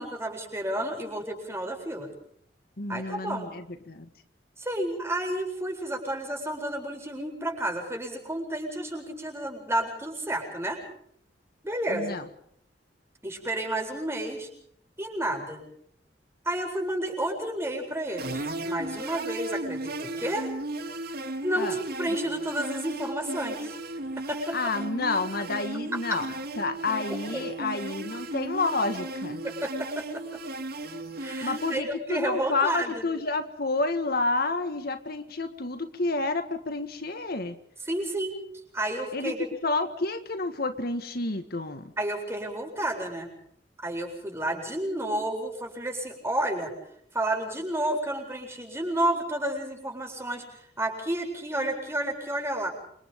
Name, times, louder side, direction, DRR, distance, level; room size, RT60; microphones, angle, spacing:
voice 1, 0.0-2.1 2.9-3.5 4.6-10.8 11.6-12.2 13.2-14.5 15.0-15.6 16.4-20.5 21.4-23.8 24.3-24.6 25.9-26.2 27.3-27.4 29.4-30.2 31.2-33.1 37.9-38.4 38.7-39.5 42.0-43.3 43.8-46.7 47.1-52.7, right 1 dB, 15° right, 2 dB, 7.7 m, -31 dB
voice 2, 2.8-4.1 11.9-12.3 21.6-21.8 24.5-26.3 26.6-29.4 31.4-37.6 39.1-41.8, left 3 dB, 60° left, 8 dB, 1.8 m, -29 dB
sound 1, 18.2-31.8, right 2 dB, 60° right, 3.1 m, -35 dB
29.5 x 27.0 x 3.8 m, 0.69 s
head